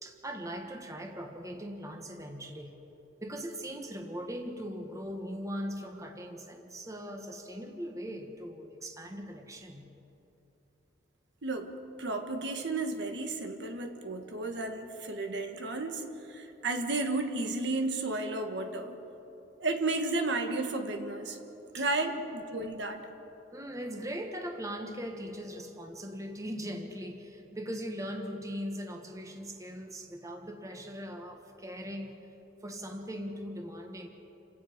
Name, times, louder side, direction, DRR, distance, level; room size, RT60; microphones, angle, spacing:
voice 1, 0.0-2.7 3.2-9.9 21.7-21.8 22.1-22.2 23.5-32.3 32.6-34.1, equal, 20° right, 3 dB, 1.6 m, -40 dB
voice 2, 11.4-11.7 12.0-16.0 16.3-19.0 19.6-21.4 21.7-23.0, right 2 dB, 65° right, 5 dB, 1.6 m, -33 dB
29.0 x 17.5 x 5.2 m, 3.0 s
head